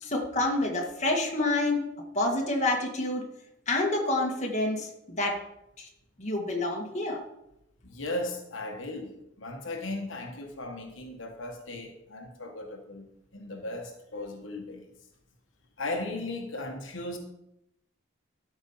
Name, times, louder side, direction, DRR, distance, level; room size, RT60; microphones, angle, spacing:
voice 1, 0.0-1.9 2.2-3.2 3.7-5.4 5.8-5.9 6.2-7.2, left 2 dB, 35° left, 1.9 m, -28 dB
voice 2, 7.8-13.1 13.3-14.9 15.8-17.2, left 2 dB, 80° left, 1.4 m, -37 dB
12.5 x 5.3 x 5.6 m
head